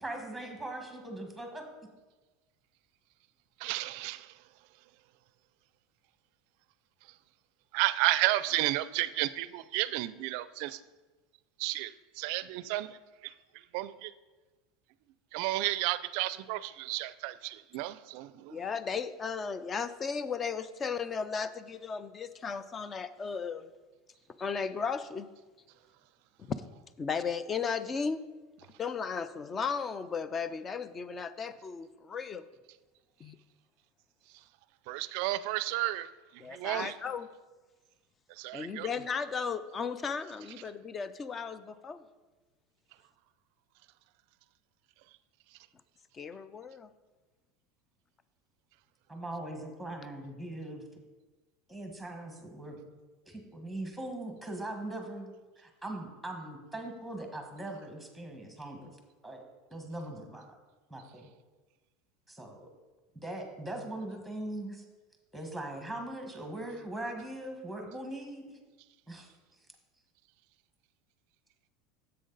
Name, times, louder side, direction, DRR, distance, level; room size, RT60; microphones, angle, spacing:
voice 1, 0.0-1.7 49.1-50.8 51.7-52.9 53.3-55.3 55.6-58.9 59.2-60.6 60.9-61.3 62.3-62.7 63.2-64.8 65.3-68.6 69.1-69.3, right 1 dB, ahead, 3 dB, 1.5 m, -40 dB
voice 2, 3.6-4.4 7.7-10.8 11.6-13.3 13.7-14.1 15.3-18.6 34.9-37.0 38.3-38.9, right 17 dB, 60° right, 15 dB, 0.4 m, -32 dB
voice 3, 18.5-23.7 24.4-25.3 26.5-26.6 27.0-28.2 28.8-32.4 33.2-33.4 36.4-37.3 38.5-42.0 46.1-46.9, left 5 dB, 20° left, 14 dB, 0.4 m, -35 dB
10.0 x 7.6 x 4.0 m, 1.2 s
supercardioid pair, 150°, 0 cm